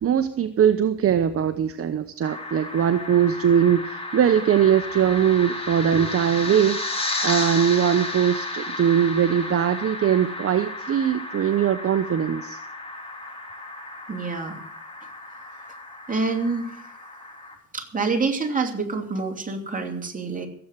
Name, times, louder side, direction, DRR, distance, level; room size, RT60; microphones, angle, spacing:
voice 1, 0.0-12.6, right 9 dB, 50° right, 9 dB, 0.9 m, -21 dB
sound 1, 2.2-17.5, left 2 dB, 20° left, 3.0 m, -33 dB
voice 2, 14.1-14.6 16.1-16.8 17.7-20.5, right 4 dB, 25° right, 3 dB, 2.9 m, -27 dB
15.5 x 8.2 x 8.3 m, 0.64 s
cardioid pair, 90°, 30 cm